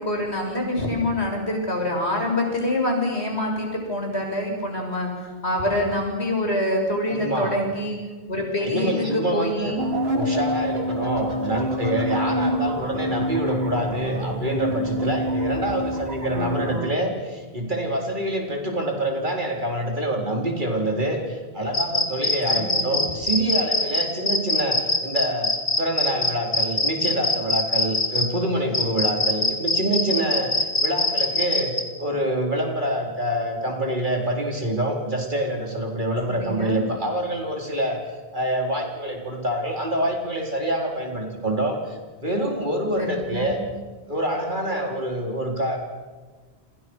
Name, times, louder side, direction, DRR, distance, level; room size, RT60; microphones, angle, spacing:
voice 1, 0.0-8.0 8.3-9.8 16.3-17.0 22.5-23.0 36.3-36.8 43.0-43.5, left 1 dB, 80° left, 1 dB, 7.1 m, -26 dB
voice 2, 7.1-7.6 8.6-9.8 10.1-38.0 38.3-43.6 44.1-45.8, right 1 dB, 45° right, 2 dB, 4.4 m, -26 dB
sound 1, 9.8-16.8, equal, 65° right, 3.4 m, -27 dB
sound 2, 21.7-28.3 28.7-31.8, left 2 dB, 60° left, 3.0 m, -22 dB
29.5 x 27.0 x 6.3 m, 1.4 s
omnidirectional pair, 1.1 m